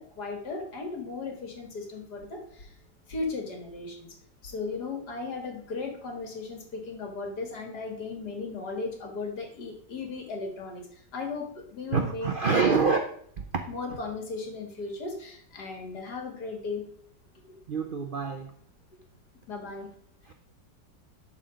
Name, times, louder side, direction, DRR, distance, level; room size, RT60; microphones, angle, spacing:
voice 1, 0.0-2.8 3.1-4.2 4.4-12.8 13.7-16.8 17.5-17.6 19.5-19.9, left 4 dB, 60° left, 3 dB, 2.3 m, -36 dB
voice 2, 11.9-13.0 13.4-13.5 17.7-18.5 20.2-20.3, right 5 dB, 90° right, 5 dB, 0.4 m, -26 dB
11.5 x 4.3 x 5.1 m, 0.63 s
omnidirectional pair, 2.0 m